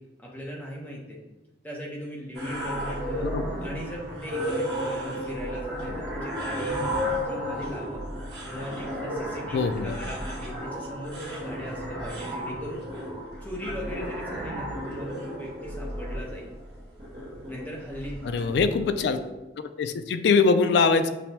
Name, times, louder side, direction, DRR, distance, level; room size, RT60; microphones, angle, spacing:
voice 1, 0.2-1.2 1.6-3.3 3.6-8.0 8.4-12.8 13.4-16.5 17.5-18.5, equal, 10° left, -3 dB, 0.7 m, -38 dB
sound 1, 2.3-19.3, equal, 65° right, 1.1 m, -33 dB
voice 2, 9.5-10.0 18.2-19.2 19.8-21.1, left 4 dB, 70° left, 10 dB, 0.3 m, -22 dB
6.0 x 2.1 x 2.7 m, 1.0 s
head